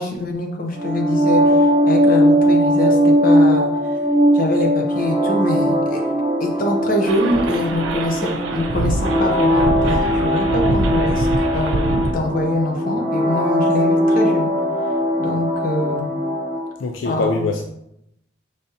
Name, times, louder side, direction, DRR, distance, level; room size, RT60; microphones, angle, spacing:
voice 1, 0.0-4.0 4.3-6.0 6.4-11.3 11.5-14.5 15.2-16.1 17.0-17.3, left 1 dB, 45° left, 1 dB, 0.8 m, -24 dB
sound 1, 0.8-16.7, equal, 35° right, 0.9 m, -19 dB
sound 2, 7.1-12.1, right 2 dB, 75° right, 0.4 m, -24 dB
voice 2, 16.8-17.6, left 3 dB, 75° left, 3 dB, 0.4 m, -23 dB
5.1 x 3.4 x 2.7 m, 0.80 s
head